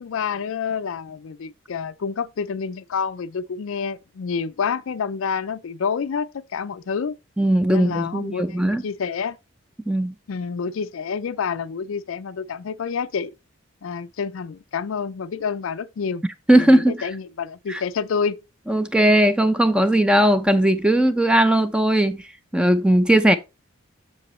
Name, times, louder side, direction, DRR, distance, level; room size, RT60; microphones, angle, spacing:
voice 1, 0.0-7.2 7.7-9.4 10.3-13.3 13.8-16.2 16.5-18.4, left 6 dB, 70° left, 0.4 m, -28 dB
voice 2, 7.4-8.8 9.9-10.1 16.5-17.1 17.7-17.8 18.7-22.2 22.5-23.4, right 1 dB, 5° right, 0.5 m, -18 dB
7.7 x 6.9 x 3.1 m
head